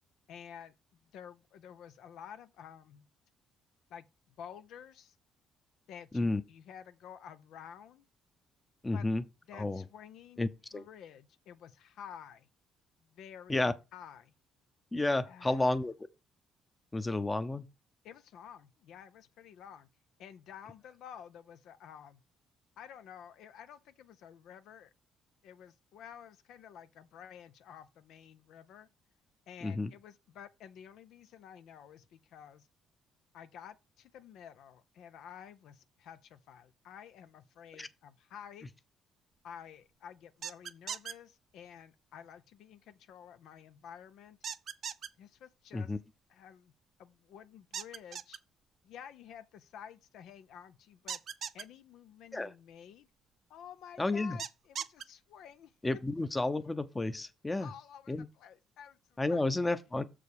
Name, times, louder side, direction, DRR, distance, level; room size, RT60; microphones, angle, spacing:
voice 1, 0.3-3.1 3.9-5.1 5.9-8.1 8.9-9.1 9.5-10.4 10.7-12.5 13.0-14.3 15.3-15.6 18.0-19.9 20.2-22.2 22.8-24.9 25.4-28.9 29.5-32.7 33.3-38.7 39.4-44.4 45.2-45.9 46.3-46.7 47.0-48.4 48.8-51.2 51.5-53.1 53.5-54.5 54.8-55.7 57.6-58.1 58.4-59.4, left 8 dB, 75° left, 0.6 m, -51 dB
voice 2, 8.8-9.2 9.5-9.9 10.4-10.8 13.5-13.7 14.9-16.1 16.9-17.7 29.6-29.9 37.7-37.9 45.7-46.0 52.3-52.5 54.0-54.4 55.8-57.7 58.1-58.3 59.2-60.0, left 2 dB, 15° left, 0.8 m, -31 dB
sound 1, 40.4-41.1 44.4-45.1 47.7-48.4 51.1-51.6 54.4-55.0, right 8 dB, 55° right, 0.6 m, -38 dB
6.9 x 5.0 x 4.8 m
cardioid pair, 90°, 0 cm